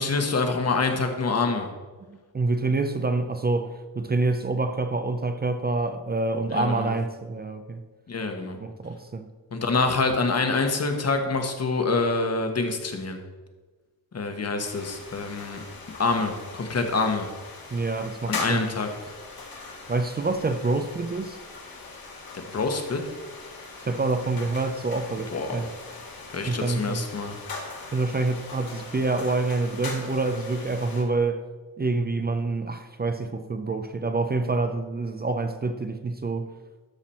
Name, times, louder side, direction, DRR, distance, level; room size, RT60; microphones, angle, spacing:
voice 1, 0.0-1.7 6.5-6.9 8.1-8.6 9.5-13.2 14.1-15.6 16.0-17.2 18.3-18.9 22.5-23.0 25.3-25.6 26.3-27.3, left 3 dB, 40° left, 1.3 m, -26 dB
voice 2, 2.1-7.8 8.6-9.3 17.7-18.6 19.9-21.4 23.8-25.7 26.4-27.0 27.9-31.4 31.8-36.5, right 3 dB, 25° right, 0.6 m, -27 dB
sound 1, 14.6-31.0, left 3 dB, 70° left, 2.1 m, -40 dB
13.5 x 5.9 x 4.3 m
wide cardioid pair, 120°, 37 cm